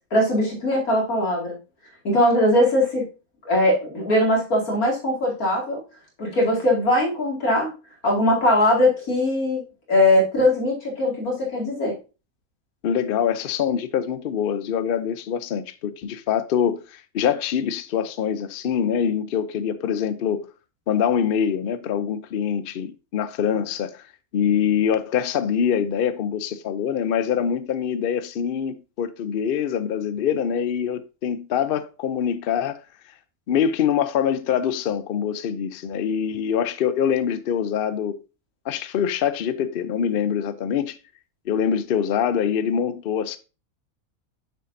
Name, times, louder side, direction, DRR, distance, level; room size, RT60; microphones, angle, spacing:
voice 1, 0.1-1.6 2.0-3.0 3.4-5.8 6.2-7.7 8.0-9.6 9.9-11.9, left 1 dB, 85° left, 2.8 m, -20 dB
voice 2, 12.8-20.5 20.9-24.0 24.3-32.8 33.5-38.2 38.7-41.0 41.5-43.4, left 8 dB, 60° left, 0.6 m, -24 dB
6.7 x 6.4 x 2.6 m
omnidirectional pair, 1.5 m